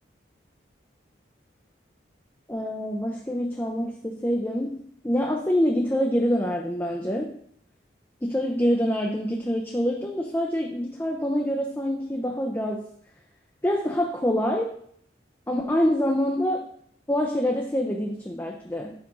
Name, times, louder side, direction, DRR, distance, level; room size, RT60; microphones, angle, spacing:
voice 1, 2.5-7.4 8.2-12.9 13.6-14.7 15.5-16.6 17.1-18.9, equal, 10° left, 0 dB, 0.6 m, -26 dB
9.6 x 5.1 x 3.8 m, 0.64 s
head